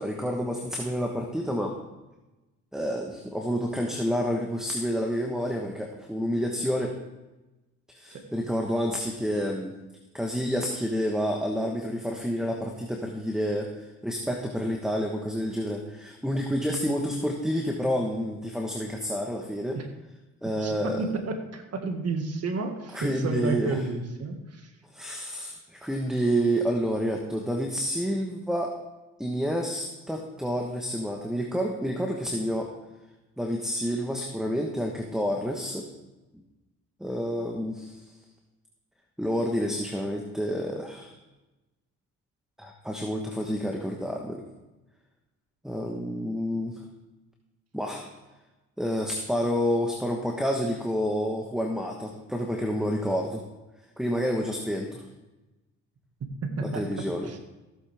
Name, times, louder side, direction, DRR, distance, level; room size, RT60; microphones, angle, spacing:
voice 1, 0.0-1.8 2.7-6.9 7.9-9.7 10.1-19.8 20.4-21.1 22.9-23.8 24.9-28.7 29.2-32.7 33.4-35.9 37.0-38.1 39.2-41.1 42.6-44.4 45.6-46.8 47.7-48.0 48.8-53.4 54.0-55.0 56.6-57.3, equal, ahead, 1 dB, 1.3 m, -29 dB
voice 2, 20.4-24.7 56.4-56.9 57.2-57.4, right 3 dB, 55° right, 5 dB, 1.8 m, -31 dB
15.0 x 8.4 x 3.5 m, 1.1 s
cardioid pair, 90°, 30 cm